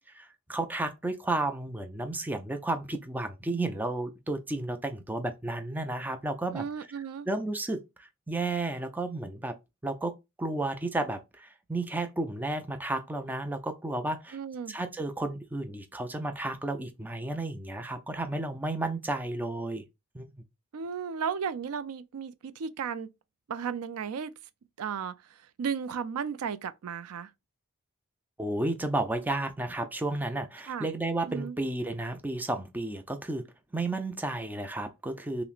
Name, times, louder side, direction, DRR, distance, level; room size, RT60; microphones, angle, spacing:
voice 1, 0.1-6.7 7.3-9.6 9.8-14.4 14.7-19.8 20.1-20.3 28.4-33.5 33.7-35.4, right 2 dB, 10° right, 0.4 m, -32 dB
voice 2, 6.5-7.3 14.3-14.8 20.7-23.1 23.5-24.3 24.8-27.3 30.7-30.9 31.3-31.6, right 6 dB, 90° right, 0.4 m, -34 dB
5.6 x 2.1 x 2.4 m
head